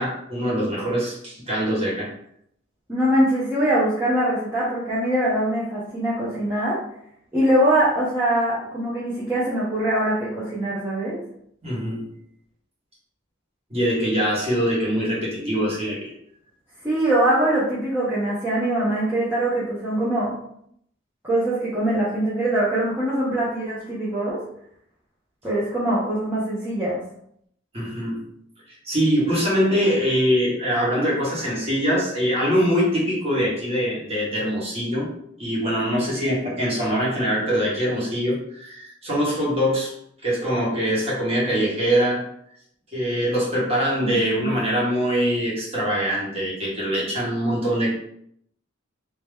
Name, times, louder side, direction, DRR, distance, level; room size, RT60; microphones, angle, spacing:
voice 1, 0.0-2.1 11.6-12.0 13.7-16.1 27.7-28.2 28.8-35.1 35.4-39.9 40.2-42.2 42.9-47.9, equal, 30° right, -6 dB, 1.4 m, -23 dB
voice 2, 2.9-6.8 7.3-11.2 16.8-20.3 21.2-24.4 25.4-27.0 44.0-44.5, right 1 dB, 10° right, -10 dB, 0.9 m, -23 dB
3.4 x 2.9 x 3.4 m, 0.71 s
head